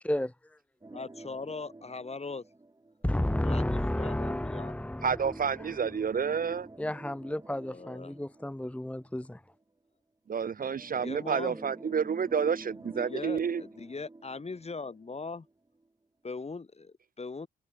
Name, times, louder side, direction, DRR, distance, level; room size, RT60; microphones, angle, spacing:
sound 1, 0.8-3.5 5.0-9.3 10.6-15.5 15.8-15.9 16.5-16.6, right 2 dB, 20° right, 3.2 m, -48 dB
voice 1, 0.9-2.4 3.4-4.8 7.6-8.2 10.9-11.6 12.9-15.5 16.2-17.5, left 4 dB, 30° left, 3.0 m, -40 dB
voice 2, 3.0-5.8 6.8-9.4, left 1 dB, 5° left, 1.3 m, -32 dB
voice 3, 5.0-6.7 10.3-13.6, right 6 dB, 45° right, 0.8 m, -29 dB
cardioid pair, 80°, 20 cm